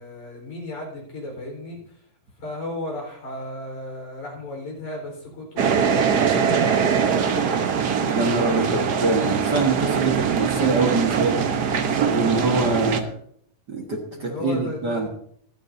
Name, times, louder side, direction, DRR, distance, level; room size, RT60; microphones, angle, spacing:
voice 1, 0.0-2.0 2.4-7.7 12.9-13.2 14.1-15.1, left 2 dB, 70° left, 0 dB, 5.9 m, -35 dB
sound 1, 5.6-13.0, right 6 dB, 85° right, 0.8 m, -22 dB
voice 2, 8.1-11.5 12.1-13.0 13.7-15.1, right 3 dB, 40° right, 1 dB, 1.8 m, -24 dB
26.0 x 9.1 x 2.8 m, 0.63 s
omnidirectional pair, 3.4 m